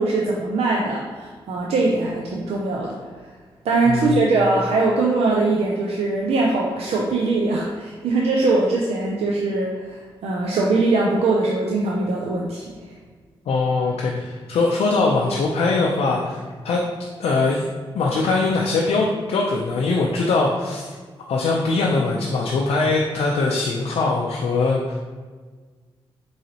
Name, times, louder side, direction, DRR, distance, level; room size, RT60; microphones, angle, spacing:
voice 1, 0.0-2.9 3.6-12.6, right 3 dB, 80° right, -2 dB, 0.4 m, -21 dB
voice 2, 3.9-4.3 13.5-16.8 17.2-17.7 17.9-20.9 21.3-25.0, left 3 dB, 80° left, -2 dB, 0.4 m, -21 dB
3.8 x 3.1 x 2.8 m, 1.5 s
cardioid pair, 55°, 10 cm